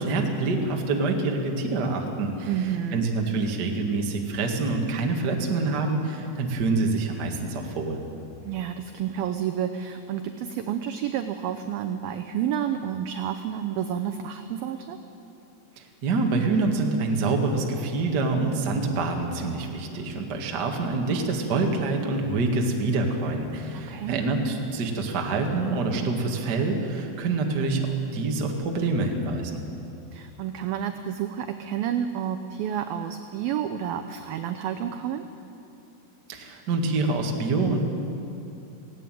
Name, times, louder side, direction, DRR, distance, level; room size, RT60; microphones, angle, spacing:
voice 1, 0.0-8.0 16.0-27.9 28.1-29.6 36.3-37.8, right 3 dB, 60° right, 2 dB, 1.1 m, -26 dB
voice 2, 2.5-3.1 8.4-15.0 23.9-24.3 30.1-35.2, right 9 dB, 85° right, 7 dB, 2.1 m, -30 dB
17.5 x 17.0 x 9.2 m, 2.8 s
omnidirectional pair, 5.1 m